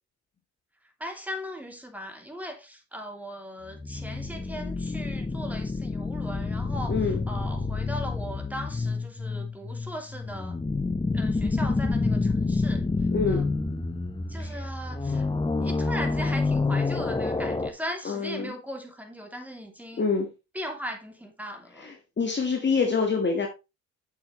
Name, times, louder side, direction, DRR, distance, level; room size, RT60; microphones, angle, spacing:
voice 1, 1.0-7.0 7.3-10.6 11.1-12.8 13.3-13.4 14.3-15.3 15.6-20.0 20.5-21.9, equal, 5° right, 2.9 m, -38 dB
sound 1, 3.7-17.7, left 3 dB, 10° left, 1.0 m, -28 dB
voice 2, 6.9-7.2 13.1-13.5 14.4-14.6 18.0-18.5 20.0-20.3 21.8-23.5, left 4 dB, 30° left, 1.6 m, -26 dB
8.2 x 7.3 x 3.2 m
hypercardioid pair, 55°, 38 cm